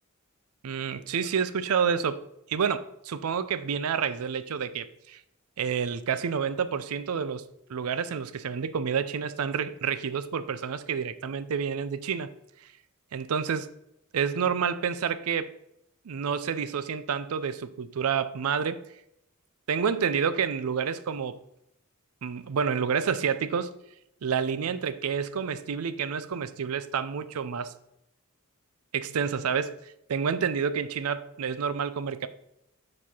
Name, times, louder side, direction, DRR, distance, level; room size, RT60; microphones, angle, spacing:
voice 1, 0.6-2.2 2.5-5.2 5.6-7.4 7.7-12.3 13.1-13.7 14.1-15.5 16.1-18.8 19.7-21.4 22.2-23.7 24.2-27.7 28.9-29.8 30.1-32.3, right 6 dB, 85° right, 14 dB, 0.5 m, -29 dB
7.2 x 4.2 x 4.4 m, 0.80 s
head